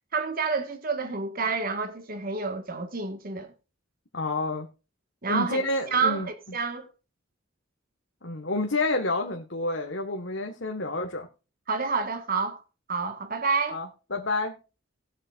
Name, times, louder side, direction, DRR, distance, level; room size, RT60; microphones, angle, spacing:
voice 1, 0.1-3.5 5.2-5.6 5.9-6.2 6.5-6.9 11.7-12.6 12.9-13.8, right 4 dB, 45° right, 1.6 m, -28 dB
voice 2, 4.1-4.7 5.3-6.3 8.2-11.3 13.7-14.6, left 2 dB, 60° left, 1.5 m, -29 dB
19.5 x 7.5 x 2.5 m
head